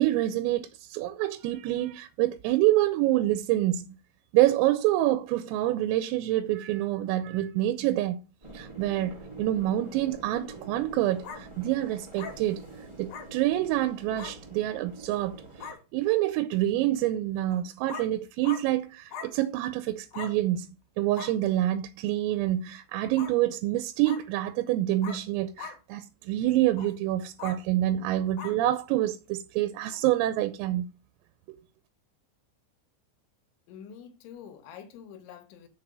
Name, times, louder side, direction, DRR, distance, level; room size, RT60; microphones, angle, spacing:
voice 1, 0.0-3.9 4.3-8.2 8.5-12.6 13.0-15.4 15.9-20.7 21.0-30.9 31.5-31.6, right 14 dB, 85° right, 3.3 m, -27 dB
sound 1, 8.4-15.7, right 2 dB, 25° right, 0.5 m, -46 dB
sound 2, 11.2-11.4 12.2-12.3 13.1-13.3 14.2-14.3 15.2-15.3 15.6-15.8 17.5-17.6 17.9-18.1 18.4-18.6 19.1-19.3 20.1-20.3 21.1-21.3 23.2-23.3 24.0-24.2 25.0-25.2 25.6-25.8 26.7-26.9 27.4-27.6 28.4-28.6 29.9-30.0, left 6 dB, 55° left, 2.2 m, -40 dB
voice 2, 33.7-35.7, left 8 dB, 75° left, 3.2 m, -46 dB
6.9 x 6.0 x 6.2 m
omnidirectional pair, 5.9 m